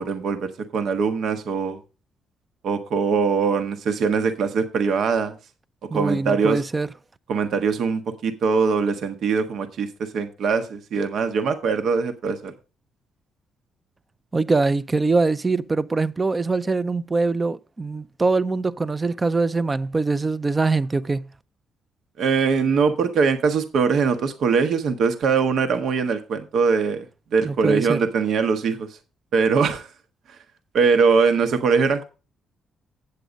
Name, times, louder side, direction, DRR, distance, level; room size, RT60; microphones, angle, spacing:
voice 1, 0.0-1.8 2.6-5.4 5.9-6.6 7.3-12.5 22.2-27.1 27.3-29.0 29.3-29.9 30.3-30.4 30.7-32.0, right 5 dB, 70° right, 1.1 m, -22 dB
voice 2, 5.9-6.9 14.3-21.2 27.4-28.0, right 3 dB, 25° right, 0.5 m, -23 dB
8.3 x 7.8 x 5.1 m
cardioid pair, 90°, 0 cm